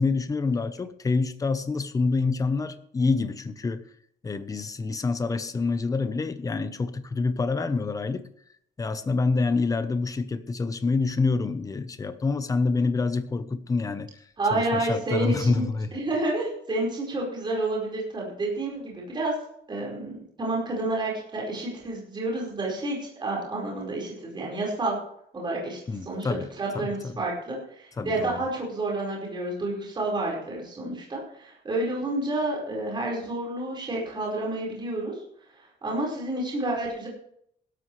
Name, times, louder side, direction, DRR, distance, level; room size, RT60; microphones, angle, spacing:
voice 1, 0.0-3.8 4.2-8.3 8.8-14.1 14.5-15.9 25.9-26.5 26.7-27.1 28.0-28.4, left 4 dB, 15° left, 11 dB, 0.9 m, -27 dB
voice 2, 14.4-15.6 15.9-19.3 19.7-25.0 25.3-26.3 26.6-35.2 35.6-37.1, right 2 dB, 25° right, -3 dB, 4.9 m, -29 dB
16.5 x 13.0 x 3.3 m, 0.69 s
cardioid pair, 180°, 20 cm